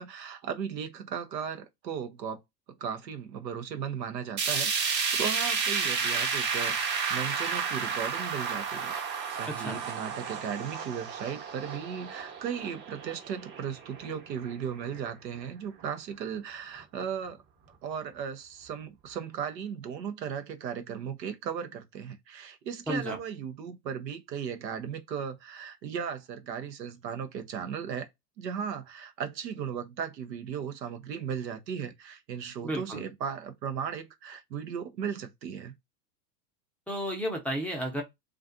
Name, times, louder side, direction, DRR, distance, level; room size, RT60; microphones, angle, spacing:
voice 1, 0.0-2.4 2.8-17.4 17.8-28.1 28.4-35.7, right 7 dB, 85° right, 0.7 m, -36 dB
sound 1, 4.4-14.5 14.9-15.0 15.4-15.5 16.4-16.5, right 5 dB, 55° right, 1.1 m, -31 dB
voice 2, 9.5-9.8 22.9-23.2 32.6-33.0 36.9-38.0, equal, 5° left, 0.5 m, -32 dB
2.4 x 2.4 x 2.5 m
hypercardioid pair, 100°, 49 cm